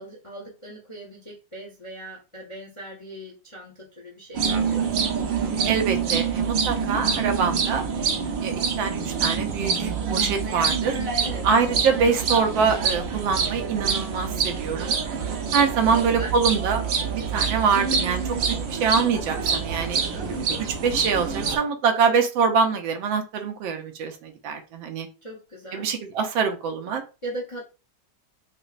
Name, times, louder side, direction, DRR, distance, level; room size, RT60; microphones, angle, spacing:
voice 1, 0.0-5.1 11.2-11.5 15.9-16.3 20.1-20.5 25.2-25.9 27.2-27.6, right 1 dB, 40° left, -3 dB, 0.4 m, -39 dB
sound 1, 4.3-21.6, right 6 dB, 65° right, 0.8 m, -26 dB
voice 2, 5.7-7.8 8.4-11.0 11.4-14.9 15.5-16.8 17.1-20.0 20.8-25.1 25.7-27.0, right 5 dB, 85° right, 5 dB, 1.4 m, -24 dB
5.2 x 2.0 x 2.4 m, 0.31 s
omnidirectional pair, 2.1 m